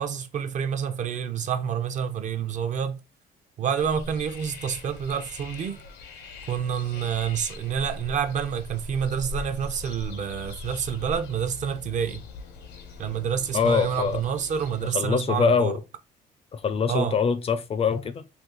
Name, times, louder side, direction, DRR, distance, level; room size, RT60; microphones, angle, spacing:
voice 1, 0.0-3.0 3.6-5.8 6.5-12.2 13.0-15.8 16.9-17.2, right 7 dB, 45° right, 0.6 m, -28 dB
sound 1, 3.8-14.9, left 2 dB, 75° left, 0.8 m, -41 dB
voice 2, 13.5-14.2 14.9-15.8 16.5-18.2, left 6 dB, 35° left, 0.4 m, -23 dB
2.7 x 2.4 x 3.8 m
cardioid pair, 110°, 17 cm